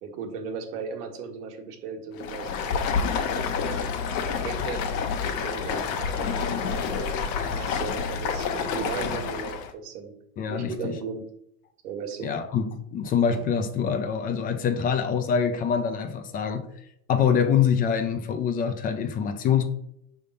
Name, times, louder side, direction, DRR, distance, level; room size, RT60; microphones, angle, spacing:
voice 1, 0.0-3.8 4.3-4.9 5.2-7.1 7.5-10.1 10.5-11.2 11.8-12.3, right 5 dB, 65° right, 4 dB, 1.5 m, -36 dB
Stream, 2.1-9.7, left 6 dB, 50° left, 1.0 m, -28 dB
voice 2, 10.4-10.9 12.2-16.7 17.1-19.6, left 7 dB, 20° left, 8 dB, 0.4 m, -25 dB
5.4 x 3.6 x 5.4 m, 0.75 s
hypercardioid pair, 125°, 48 cm